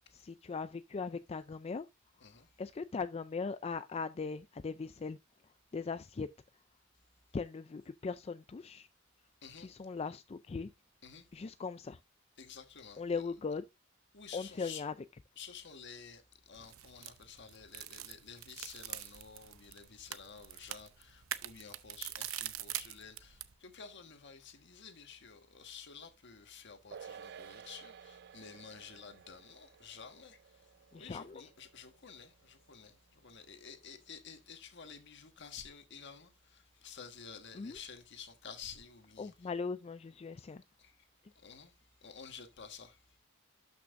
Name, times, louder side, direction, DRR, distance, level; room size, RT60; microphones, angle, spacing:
voice 1, 0.1-1.9 2.6-5.2 5.7-6.3 7.3-8.9 9.6-10.7 11.3-12.0 13.0-13.6 14.3-14.9 30.9-31.4 37.5-37.8 39.2-40.6, left 4 dB, 30° left, 0.4 m, -39 dB
voice 2, 2.2-2.5 9.4-9.7 11.0-11.2 12.4-13.3 14.1-14.8 15.4-39.5 40.8-41.1 41.3-41.7 42.0-43.2, left 6 dB, 60° left, 1.6 m, -51 dB
sound 1, 16.5-23.5, right 13 dB, 80° right, 0.7 m, -44 dB
sound 2, 26.9-33.6 33.9-34.0, right 7 dB, 55° right, 0.4 m, -54 dB
12.5 x 6.0 x 2.6 m
head